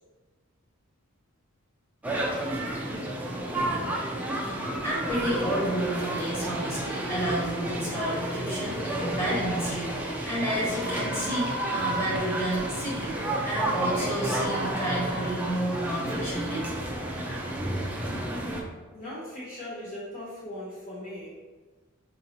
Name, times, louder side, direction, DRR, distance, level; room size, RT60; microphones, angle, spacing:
sound 1, 2.0-18.6, right 1 dB, 5° right, 0.4 m, -31 dB
voice 1, 4.3-13.2 13.4-16.8, right 1 dB, 10° left, -8 dB, 1.3 m, -31 dB
voice 2, 18.9-21.4, left 1 dB, 40° left, -7 dB, 0.8 m, -39 dB
5.2 x 2.7 x 2.9 m, 1.3 s
head